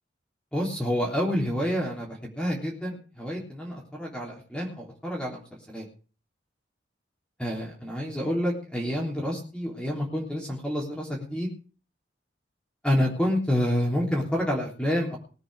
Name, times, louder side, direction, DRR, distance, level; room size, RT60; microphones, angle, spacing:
voice 1, 0.5-5.9 7.4-11.5 12.8-15.2, equal, 5° left, -2 dB, 3.5 m, -28 dB
20.0 x 8.6 x 4.8 m, 0.37 s
head